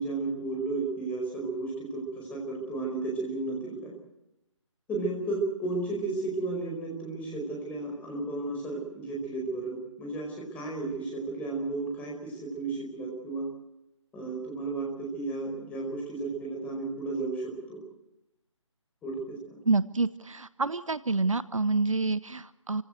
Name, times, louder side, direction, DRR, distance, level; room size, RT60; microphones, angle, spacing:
voice 1, 0.0-3.9 4.9-13.5 14.1-17.8 19.0-19.6, right 3 dB, 10° left, -2 dB, 5.0 m, -33 dB
voice 2, 19.7-22.8, right 3 dB, 80° right, 17 dB, 1.0 m, -28 dB
27.5 x 16.5 x 7.9 m, 0.90 s
figure-of-eight pair, 150°, 16 cm